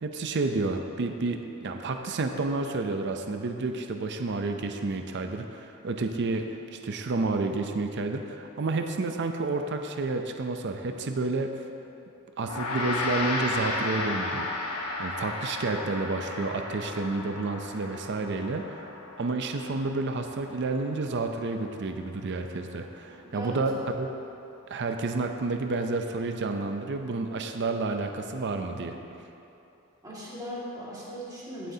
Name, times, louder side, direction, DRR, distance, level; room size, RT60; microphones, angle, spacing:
voice 1, 0.0-11.5 12.4-14.5 15.0-18.9 19.2-24.1 24.7-29.0, right 3 dB, 50° right, 5 dB, 0.5 m, -30 dB
Gong, 12.4-22.0, left 2 dB, 85° left, 1.2 m, -34 dB
voice 2, 23.0-23.6 30.0-31.7, equal, 15° right, -7 dB, 2.0 m, -39 dB
15.5 x 7.5 x 2.8 m, 2.9 s
head